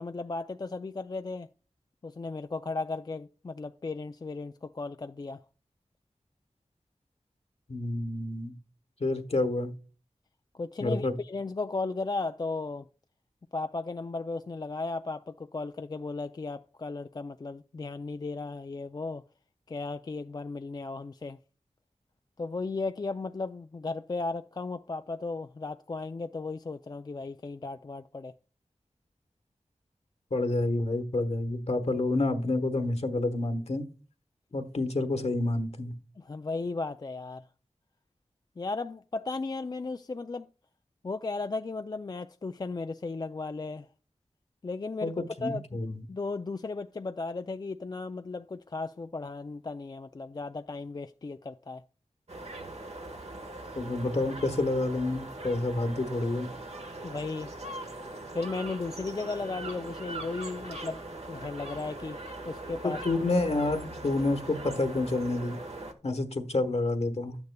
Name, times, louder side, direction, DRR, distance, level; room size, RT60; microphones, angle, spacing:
voice 1, 0.0-1.5 2.0-5.4 10.5-12.9 13.5-19.2 19.7-21.4 22.4-28.3 36.2-37.4 38.6-40.5 41.0-43.9 44.6-51.8 57.0-57.5 58.3-61.0 61.3-62.2 62.5-63.0, left 3 dB, 35° left, 0.3 m, -35 dB
voice 2, 7.7-8.5 9.0-9.7 10.8-11.1 30.3-33.9 34.5-35.9 45.0-46.0 53.7-56.5 62.8-65.6 66.0-67.4, left 2 dB, 60° left, 1.2 m, -29 dB
sound 1, 52.3-65.9, right 2 dB, 60° right, 1.3 m, -41 dB
11.5 x 9.5 x 2.2 m
wide cardioid pair, 45°, 12 cm